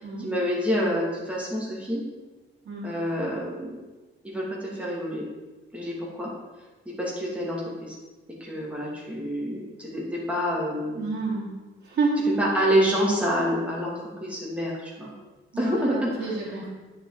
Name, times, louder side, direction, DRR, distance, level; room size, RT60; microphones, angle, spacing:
voice 1, 0.2-2.0 2.8-3.8 4.2-5.2 5.7-6.3 7.0-7.9 8.4-11.0 12.4-15.1 15.6-16.4, equal, 5° right, -4 dB, 2.8 m, -27 dB
voice 2, 11.0-11.5 11.8-12.4 15.5-15.6 15.9-16.7, right 3 dB, 55° right, -7 dB, 3.5 m, -28 dB
9.9 x 6.4 x 5.1 m, 1.2 s
wide cardioid pair, 140°, 21 cm